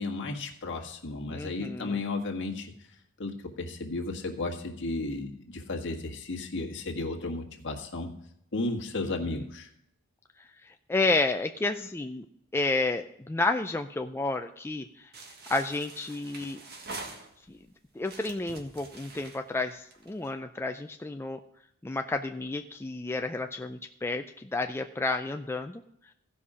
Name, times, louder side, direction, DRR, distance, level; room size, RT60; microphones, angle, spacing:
voice 1, 0.0-2.7 3.2-8.1 8.5-9.7, left 2 dB, 55° left, 1 dB, 1.7 m, -34 dB
voice 2, 1.3-2.0 10.9-12.3 12.5-14.9 15.5-16.6 17.5-17.6 18.0-21.4 21.8-25.8, left 2 dB, 10° left, 5 dB, 0.4 m, -31 dB
sound 1, 15.1-17.6 18.0-20.3, right 3 dB, 50° right, 1.6 m, -45 dB
16.0 x 5.6 x 4.9 m, 0.74 s
head